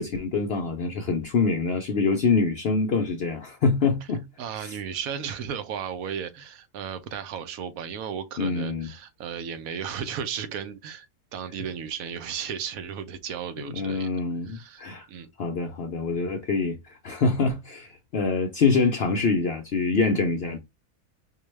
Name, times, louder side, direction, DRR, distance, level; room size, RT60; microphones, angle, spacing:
voice 1, 0.0-4.2 4.6-4.8 8.4-8.9 13.6-15.1 15.4-20.6, left 4 dB, 60° left, 0.6 m, -25 dB
voice 2, 4.4-11.1 11.3-15.3, right 8 dB, 70° right, 1.0 m, -35 dB
4.7 x 2.2 x 3.1 m
omnidirectional pair, 1.6 m